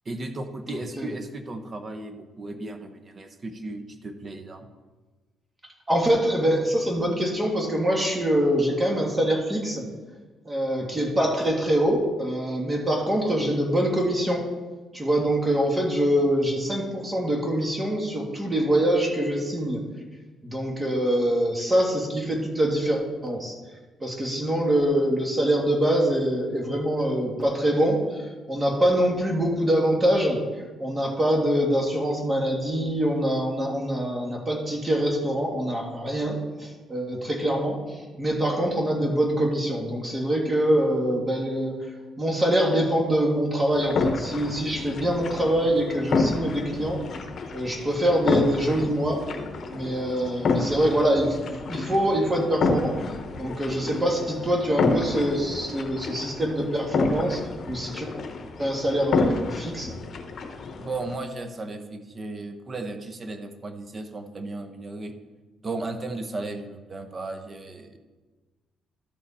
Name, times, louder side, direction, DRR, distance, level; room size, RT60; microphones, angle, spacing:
voice 1, 0.0-4.7 53.7-53.8 60.8-65.1 65.6-68.0, right 2 dB, 35° right, 7 dB, 0.9 m, -35 dB
voice 2, 0.7-1.1 5.9-9.8 10.5-14.5 14.9-19.8 20.4-23.6 24.0-28.0 28.5-30.4 30.8-41.8 42.2-47.0 47.5-49.2 49.7-53.0 53.4-58.1 58.6-59.9, right 1 dB, 20° right, 0 dB, 1.8 m, -24 dB
sound 1, 43.7-61.2, left 3 dB, 55° left, 1.0 m, -29 dB
12.5 x 5.1 x 4.2 m, 1.3 s
cardioid pair, 90°, 0 cm